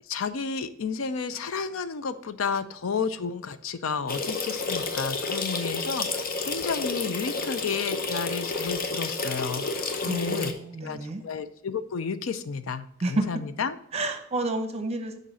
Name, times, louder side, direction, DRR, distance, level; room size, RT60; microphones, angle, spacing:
voice 1, 0.1-10.5 10.8-13.8, left 5 dB, 75° left, 12 dB, 0.5 m, -32 dB
sound 1, 4.1-10.5, left 3 dB, 45° left, 0.8 m, -30 dB
voice 2, 10.1-11.2 13.0-13.3 13.9-15.2, right 2 dB, 30° right, 7 dB, 0.8 m, -30 dB
6.3 x 5.1 x 5.5 m, 0.74 s
head